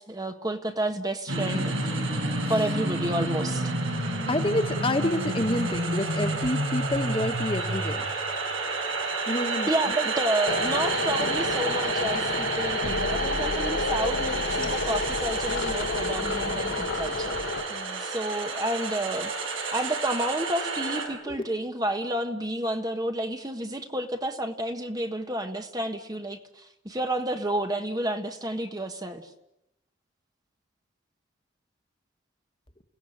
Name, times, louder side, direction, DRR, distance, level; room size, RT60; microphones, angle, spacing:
voice 1, 0.0-1.8 2.5-3.7 9.7-17.4 17.9-29.3, right 1 dB, 20° right, 5 dB, 1.4 m, -30 dB
sound 1, 1.3-21.1, right 3 dB, 85° right, 6.0 m, -30 dB
voice 2, 4.3-8.0 9.3-9.9 16.6-16.9 17.7-18.1 21.3-21.4, left 1 dB, 25° left, 6 dB, 1.8 m, -29 dB
sound 2, 10.5-17.6, left 3 dB, 80° left, 2.1 m, -30 dB
29.5 x 17.5 x 9.9 m, 0.86 s
head